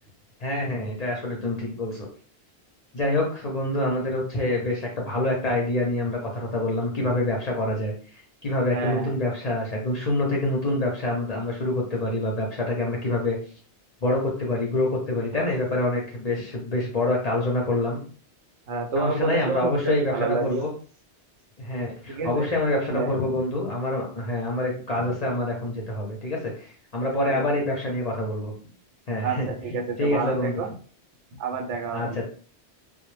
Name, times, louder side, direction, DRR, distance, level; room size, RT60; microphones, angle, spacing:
voice 1, 0.4-2.1 2.9-7.9 8.4-13.4 14.0-18.0 19.0-20.7 21.6-28.5 29.1-29.5 30.0-30.6 31.9-32.2, left 1 dB, 45° left, -2 dB, 0.5 m, -26 dB
voice 2, 8.7-9.1 15.3-15.5 18.7-20.6 22.1-22.5 22.8-23.3 27.2-27.5 29.2-30.8 31.4-32.2, right 4 dB, 85° right, 3 dB, 0.9 m, -29 dB
2.1 x 2.0 x 3.1 m, 0.43 s
omnidirectional pair, 1.2 m